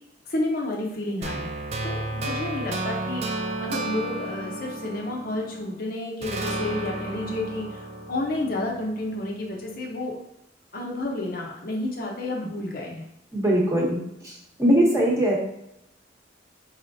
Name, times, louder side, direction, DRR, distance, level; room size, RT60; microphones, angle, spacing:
voice 1, 0.3-1.5 1.8-10.2 10.7-13.0, left 2 dB, 55° left, -1 dB, 0.7 m, -30 dB
sound 1, 1.2-5.8 6.2-9.3, right 2 dB, 35° right, 0.3 m, -32 dB
voice 2, 13.3-14.3 14.6-15.4, right 1 dB, 15° right, -4 dB, 1.0 m, -21 dB
4.8 x 3.2 x 2.7 m, 0.80 s
head